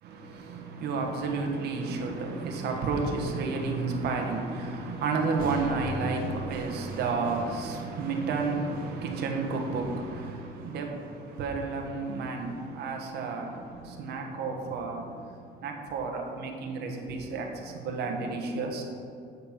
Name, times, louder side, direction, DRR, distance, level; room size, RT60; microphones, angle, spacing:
voice 1, 0.0-18.8, right 4 dB, 75° right, 1.4 m, -31 dB
sound 1, 5.4-13.4, right 2 dB, 60° right, 1.7 m, -42 dB
12.0 x 4.4 x 5.8 m
cardioid pair, 110°, 17 cm